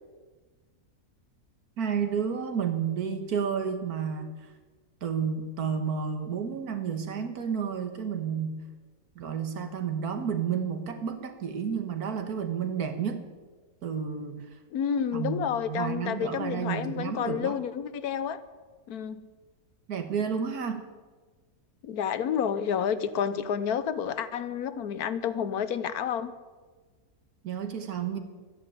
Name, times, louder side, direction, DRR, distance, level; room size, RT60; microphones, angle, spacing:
voice 1, 1.8-4.3 5.0-8.6 9.2-13.3 13.8-14.5 15.1-17.6 19.9-20.9 27.4-28.2, right 7 dB, 90° right, 6 dB, 1.9 m, -31 dB
voice 2, 14.7-18.4 18.9-19.3 21.8-26.4, left 8 dB, 85° left, 13 dB, 1.3 m, -30 dB
13.0 x 10.0 x 8.8 m, 1.4 s
omnidirectional pair, 1.5 m